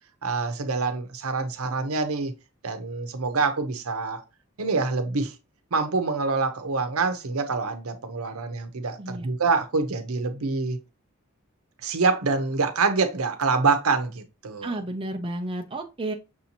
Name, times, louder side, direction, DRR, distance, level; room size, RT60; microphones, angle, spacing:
voice 1, 0.2-2.3 2.6-4.2 4.6-5.4 5.7-10.8 11.8-14.7, right 4 dB, 90° right, 0.8 m, -26 dB
voice 2, 14.6-16.1, right 1 dB, 25° right, 0.6 m, -31 dB
6.2 x 2.8 x 2.9 m
head